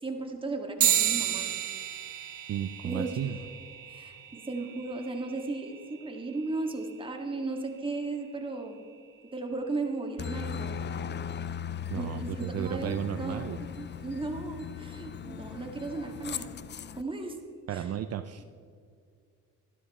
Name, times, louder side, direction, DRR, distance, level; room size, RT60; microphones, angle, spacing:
voice 1, 0.0-1.5 2.8-3.4 3.9-8.8 9.3-10.8 11.9-16.5 17.0-17.4 17.7-17.9, right 3 dB, 15° right, 2 dB, 1.9 m, -36 dB
sound 1, 0.8-10.6, right 10 dB, 70° right, 1.6 m, -34 dB
voice 2, 2.5-3.4 11.9-13.6 17.7-18.4, right 10 dB, 55° right, 9 dB, 0.6 m, -33 dB
Aircraft, 10.2-17.0, left 8 dB, 35° left, 0.5 m, -38 dB
12.5 x 12.0 x 4.3 m, 2.3 s
cardioid pair, 90°, 30 cm